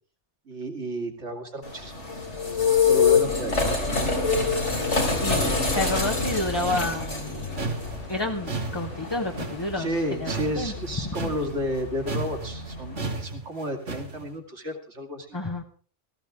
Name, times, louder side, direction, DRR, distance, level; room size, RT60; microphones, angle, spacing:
voice 1, 0.5-2.0 2.4-3.6 9.8-15.4, right 1 dB, 70° right, 4 dB, 2.6 m, -32 dB
sound 1, 1.6-13.1, left 5 dB, 80° left, 3.9 m, -27 dB
voice 2, 4.9-5.4 5.7-7.5 8.1-10.7 11.0-11.2 15.3-15.6, left 2 dB, 20° left, 2 dB, 1.1 m, -30 dB
sound 2, 6.1-11.8 12.1-14.3, right 3 dB, 90° right, 2.3 m, -34 dB
17.5 x 14.5 x 3.6 m, 0.40 s
omnidirectional pair, 1.2 m